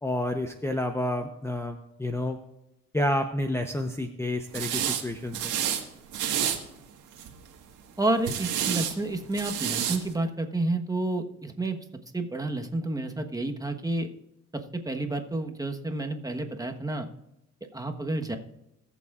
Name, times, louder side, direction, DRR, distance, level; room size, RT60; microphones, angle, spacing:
voice 1, 0.0-2.4 2.9-5.5, left 1 dB, 10° left, 6 dB, 0.8 m, -29 dB
sound 1, 4.5-5.0 5.3-5.8 6.1-6.6 7.1-7.5 8.2-8.9 9.3-10.0, right 9 dB, 90° right, 1.7 m, -29 dB
voice 2, 8.0-11.8 12.1-14.1 14.8-17.1 17.7-18.4, right 2 dB, 10° right, 5 dB, 1.2 m, -30 dB
20.5 x 7.1 x 2.5 m, 0.88 s
cardioid pair, 90°, 30 cm